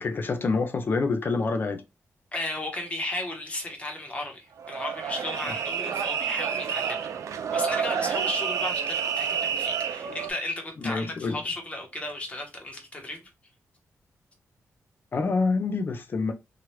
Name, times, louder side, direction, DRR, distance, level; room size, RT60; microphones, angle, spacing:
voice 1, 0.0-1.8 10.8-11.4 15.1-16.3, left 4 dB, 40° left, 0.4 m, -27 dB
voice 2, 2.3-13.2, left 2 dB, 25° left, 0.9 m, -35 dB
sound 1, 4.6-10.3, right 7 dB, 80° right, 0.4 m, -29 dB
3.0 x 2.4 x 3.0 m
wide cardioid pair, 130°, 5 cm